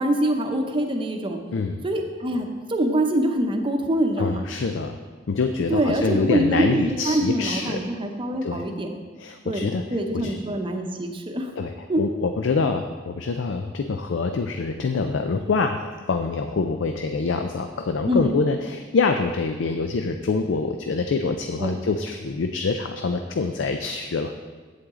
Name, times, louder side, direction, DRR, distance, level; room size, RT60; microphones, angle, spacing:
voice 1, 0.0-1.4 1.8-4.5 5.7-9.0 9.4-11.5 11.9-12.0 18.1-18.4 21.6-21.8, right 1 dB, 25° right, 4 dB, 0.7 m, -24 dB
voice 2, 1.5-1.8 4.2-5.0 5.3-7.8 8.4-8.6 9.2-9.8 10.1-10.4 11.6-24.3, left 4 dB, 75° left, 6 dB, 0.4 m, -25 dB
8.4 x 7.8 x 3.7 m, 1.5 s
head